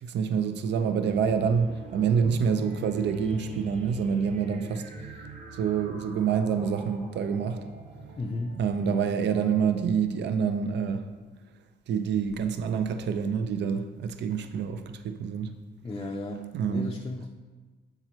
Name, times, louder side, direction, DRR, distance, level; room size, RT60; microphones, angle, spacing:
voice 1, 0.0-4.9 5.5-7.6 8.5-11.1 11.9-15.5 16.5-17.0, right 6 dB, 60° right, 8 dB, 0.5 m, -27 dB
sound 1, 0.6-10.8, right 3 dB, 30° right, 1.0 m, -44 dB
voice 2, 8.2-8.6 15.8-17.3, left 2 dB, 20° left, 1 dB, 0.5 m, -34 dB
7.7 x 5.7 x 3.0 m, 1.3 s
cardioid pair, 90°, 20 cm